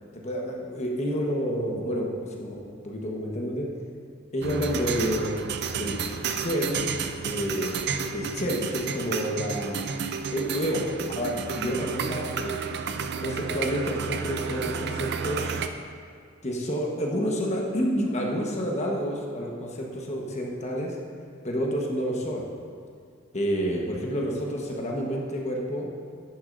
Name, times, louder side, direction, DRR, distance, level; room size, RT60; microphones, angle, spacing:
voice 1, 0.1-3.7 4.3-5.4 5.7-6.0 6.4-6.8 7.2-7.9 8.1-10.8 11.1-12.6 13.2-15.6 16.4-21.0 21.4-22.4 23.3-25.9, equal, 35° left, -1 dB, 1.2 m, -29 dB
sound 1, 4.4-15.7, right 6 dB, 60° right, 0.4 m, -31 dB
10.0 x 9.6 x 2.6 m, 2.2 s
head